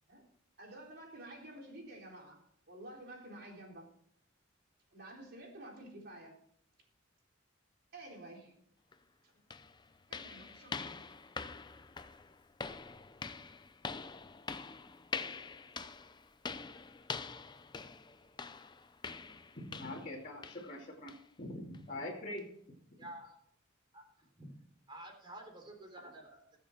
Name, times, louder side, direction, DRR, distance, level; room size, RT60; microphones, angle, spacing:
voice 1, 0.6-3.9 4.9-6.4 7.9-8.7 9.2-9.3 10.1-11.1, right 1 dB, 50° right, 0 dB, 3.9 m, -51 dB
sound 1, 8.9-9.0 9.5-20.1 20.4-20.7 21.1-21.3 21.7-21.8 22.4-22.5, left 5 dB, 20° left, 0.5 m, -45 dB
voice 2, 19.6-21.1 21.4-22.4, left 1 dB, 40° left, -5 dB, 2.6 m, -43 dB
voice 3, 23.0-23.4 23.9-24.6 24.9-26.6, right 1 dB, 25° right, 2 dB, 3.5 m, -50 dB
21.0 x 7.3 x 4.4 m, 0.67 s
head